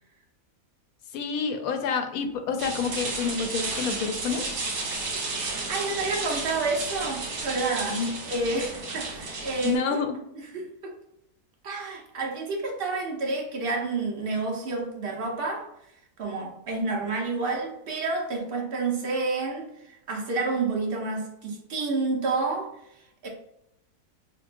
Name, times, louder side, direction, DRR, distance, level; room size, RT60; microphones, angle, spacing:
voice 1, 1.1-4.4 7.9-8.2 9.6-10.2, left 5 dB, 75° left, 6 dB, 1.0 m, -28 dB
sound 1, 2.6-9.8, right 3 dB, 80° right, 1.6 m, -33 dB
voice 2, 5.7-10.0 10.5-10.9 11.6-15.7 16.2-22.7 23.2-23.3, right 3 dB, 45° right, 0 dB, 1.0 m, -29 dB
5.8 x 2.0 x 2.5 m, 0.78 s
omnidirectional pair, 1.5 m